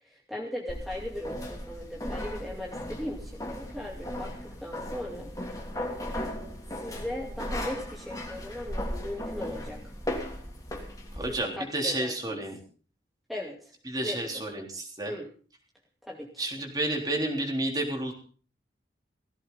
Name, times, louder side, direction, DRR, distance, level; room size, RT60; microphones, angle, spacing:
voice 1, 0.1-5.3 5.9-6.2 6.8-9.9 11.3-12.4 13.3-13.7 14.0-14.2 15.1-15.3 16.0-16.4, left 1 dB, ahead, -3 dB, 2.4 m, -38 dB
sound 1, 0.7-11.3, left 1 dB, 20° left, 2.9 m, -36 dB
voice 2, 11.1-12.6 13.9-15.1 16.4-18.1, right 1 dB, 20° right, 1 dB, 3.7 m, -31 dB
18.5 x 15.5 x 4.1 m, 0.41 s
head